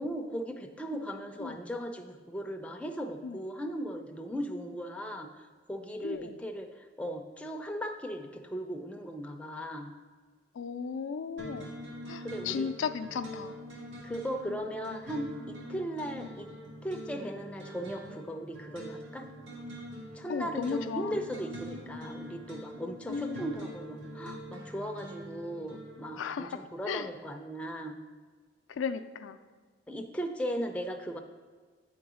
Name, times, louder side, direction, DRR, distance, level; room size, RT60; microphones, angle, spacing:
voice 1, 0.0-9.9 12.2-12.7 14.0-16.5 16.8-19.3 20.1-28.0 29.9-31.2, equal, 5° left, 3 dB, 0.4 m, -37 dB
voice 2, 6.0-6.4 10.6-11.7 12.1-13.7 20.3-21.2 21.9-22.1 23.1-23.5 26.2-27.1 28.7-29.4, left 6 dB, 90° left, 10 dB, 0.4 m, -35 dB
sound 1, 11.4-26.1, equal, 80° right, 1.6 m, -44 dB
8.7 x 3.9 x 4.8 m, 1.5 s
head